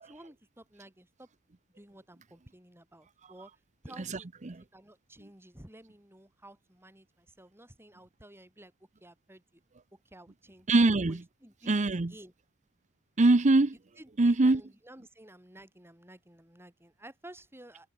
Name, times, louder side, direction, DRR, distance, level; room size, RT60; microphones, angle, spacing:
voice 1, 0.0-1.3 1.7-3.5 3.8-4.3 4.7-8.7 9.0-9.6 9.9-10.7 11.1-12.3 14.0-17.9, right 1 dB, 10° right, 6.3 m, -53 dB
voice 2, 4.1-4.6 10.7-11.2 11.7-12.1 13.2-13.7 14.2-14.6, right 2 dB, 35° right, 0.7 m, -23 dB
head